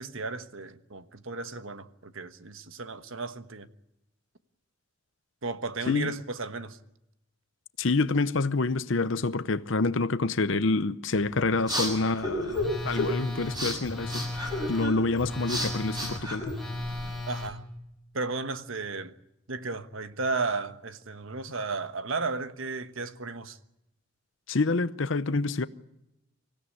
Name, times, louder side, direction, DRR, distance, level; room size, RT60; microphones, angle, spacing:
voice 1, 0.0-3.7 5.4-6.8 17.3-17.6 18.1-19.1 19.5-23.6, right 3 dB, 65° right, 1.3 m, -34 dB
voice 2, 7.8-14.3 14.7-16.5 24.5-25.6, left 3 dB, 60° left, 0.8 m, -27 dB
sound 1, 11.2-17.1, left 1 dB, 20° right, 6.6 m, -33 dB
Telephone, 12.5-17.5, left 1 dB, ahead, 3.7 m, -35 dB
25.0 x 16.0 x 9.8 m
head